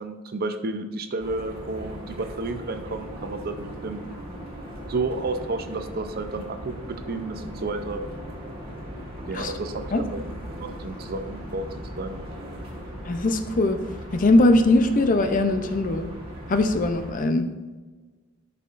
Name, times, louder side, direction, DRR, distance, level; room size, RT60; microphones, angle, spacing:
voice 1, 0.0-4.1 4.9-8.0 9.3-10.2 10.6-11.7 12.0-12.2, right 3 dB, 45° right, 8 dB, 0.6 m, -31 dB
sound 1, 1.2-17.1, equal, 25° right, 1.6 m, -38 dB
voice 2, 13.1-13.8 14.1-16.1 16.5-17.5, left 2 dB, 35° left, 8 dB, 0.5 m, -20 dB
12.0 x 5.7 x 2.5 m, 1.3 s
head